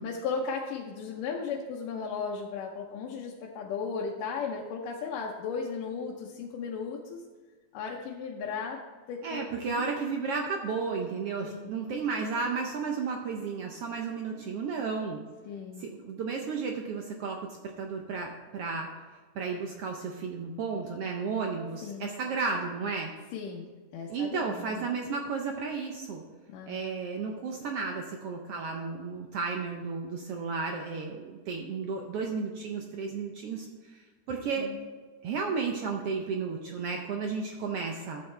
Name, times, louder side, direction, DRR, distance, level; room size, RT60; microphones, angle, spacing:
voice 1, 0.0-7.2 7.7-8.8 9.1-9.8 11.4-11.7 15.5-15.9 21.8-22.1 23.3-23.7 23.9-24.8 26.5-26.9 34.6-34.8, left 5 dB, 90° left, -2 dB, 2.5 m, -36 dB
voice 2, 9.2-15.2 15.8-18.9 19.3-23.1 24.1-26.2 26.7-34.7 35.2-38.2, right 5 dB, 75° right, 2 dB, 1.4 m, -33 dB
13.5 x 8.2 x 3.3 m, 1.4 s
omnidirectional pair, 3.7 m